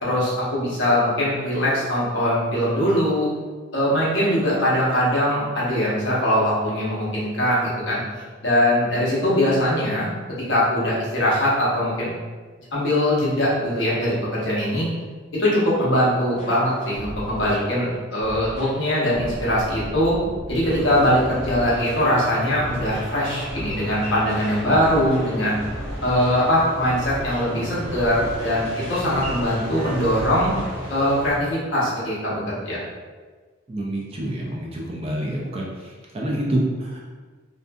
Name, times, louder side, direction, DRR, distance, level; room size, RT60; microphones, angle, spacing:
voice 1, 0.0-3.3 3.7-8.0 8.4-10.1 10.5-12.1 12.7-14.9 15.3-20.1 20.5-25.6 26.0-30.5 30.9-32.8, equal, 60° left, -7 dB, 0.9 m, -21 dB
sound 1, 16.3-30.9 31.3-31.4, equal, 35° left, 0.6 m, -38 dB
sound 2, 20.6-31.3, equal, 65° right, 0.7 m, -35 dB
voice 2, 33.7-37.0, right 1 dB, 30° right, -3 dB, 0.4 m, -27 dB
2.5 x 2.5 x 2.2 m, 1.4 s
head